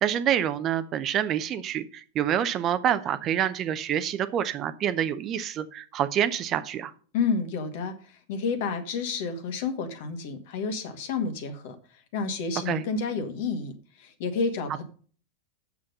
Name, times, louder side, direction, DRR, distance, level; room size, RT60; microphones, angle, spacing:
voice 1, 0.0-6.9 12.7-12.8, right 10 dB, 30° right, 13 dB, 0.7 m, -27 dB
voice 2, 7.1-8.0 8.3-11.8 12.1-13.7 14.0-14.8, left 5 dB, 50° left, 8 dB, 1.9 m, -30 dB
8.7 x 7.3 x 5.3 m, 0.41 s
figure-of-eight pair, 90°, 0 cm